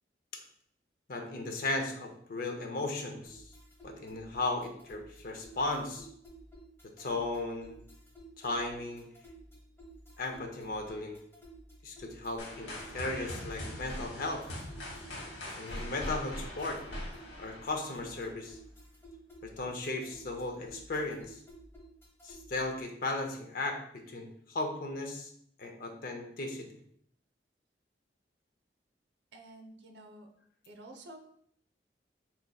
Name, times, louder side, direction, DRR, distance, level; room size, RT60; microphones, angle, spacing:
voice 1, 1.1-3.4 3.8-6.1 7.0-7.8 8.4-9.0 10.2-11.2 11.8-14.4 15.5-16.8 17.4-18.6 19.4-21.4 22.2-25.3 25.6-26.7, left 2 dB, 55° left, 3 dB, 0.6 m, -36 dB
sound 1, 3.2-22.8, right 1 dB, 15° left, 0.8 m, -53 dB
sound 2, 12.4-18.3, left 1 dB, 90° left, 1.0 m, -42 dB
voice 2, 29.3-30.3 30.7-31.2, right 1 dB, 80° right, 4 dB, 0.6 m, -50 dB
5.0 x 3.0 x 2.3 m, 0.66 s
head